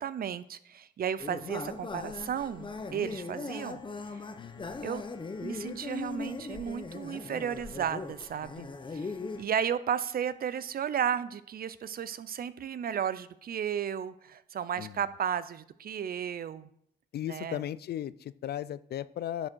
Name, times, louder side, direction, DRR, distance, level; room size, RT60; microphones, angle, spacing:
voice 1, 0.0-3.8 4.8-5.0 5.4-9.1 9.4-16.7 17.2-17.6, right 8 dB, 50° right, 15 dB, 0.6 m, -34 dB
sound 1, 1.2-9.4, left 3 dB, 25° left, 0.9 m, -39 dB
voice 2, 4.4-4.9 14.8-15.0 17.1-19.5, left 11 dB, 55° left, 18 dB, 0.4 m, -36 dB
10.5 x 6.2 x 4.6 m, 0.69 s
cardioid pair, 90°, 20 cm